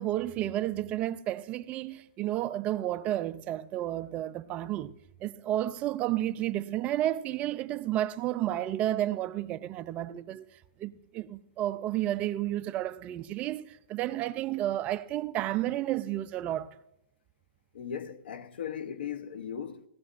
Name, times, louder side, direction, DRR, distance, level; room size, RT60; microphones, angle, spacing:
voice 1, 0.0-4.9 5.2-10.5 10.8-16.7, right 13 dB, 25° right, 0.4 m, -31 dB
voice 2, 17.7-19.8, left 8 dB, 80° left, 0.9 m, -38 dB
18.5 x 15.5 x 2.5 m
hypercardioid pair, 155°, 6 cm